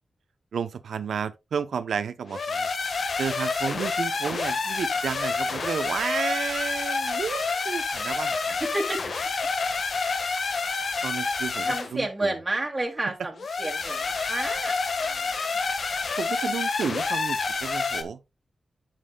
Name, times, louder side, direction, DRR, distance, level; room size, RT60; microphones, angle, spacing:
voice 1, 0.5-2.7 3.2-8.6 11.0-12.3 16.2-18.2, right 6 dB, 85° right, 0.7 m, -32 dB
sound 1, 2.3-11.9 13.4-18.0, left 4 dB, 60° left, 1.4 m, -28 dB
voice 2, 8.5-9.0 11.6-13.3 13.6-15.3, right 2 dB, 20° right, 2.1 m, -30 dB
11.5 x 7.4 x 2.2 m
wide cardioid pair, 95°, 0 cm